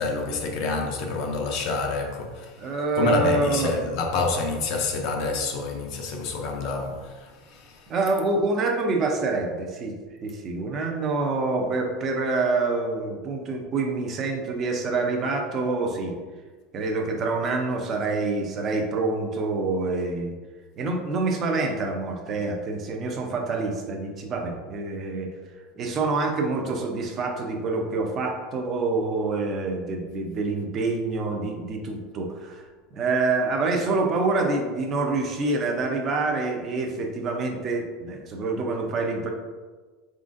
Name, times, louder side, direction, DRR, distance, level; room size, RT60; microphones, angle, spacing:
voice 1, 0.0-7.9, left 3 dB, 45° left, 0.5 m, -28 dB
voice 2, 2.6-3.7 7.9-10.0 10.2-16.1 16.7-20.3 20.8-25.3 25.7-32.6 32.9-39.3, right 3 dB, 25° right, 0.5 m, -26 dB
4.1 x 3.7 x 2.5 m
supercardioid pair, 180°, 0 cm